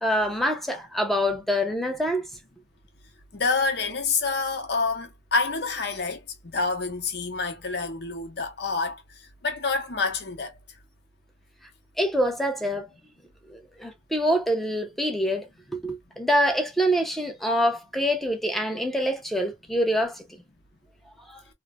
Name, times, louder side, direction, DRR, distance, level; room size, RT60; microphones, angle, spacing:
voice 1, 0.0-2.3 12.0-12.9 13.5-15.5 15.7-20.2 21.3-21.4, equal, ahead, 0.7 m, -25 dB
voice 2, 3.3-9.0 9.4-10.5, left 4 dB, 65° left, 0.8 m, -27 dB
3.1 x 2.1 x 2.3 m
head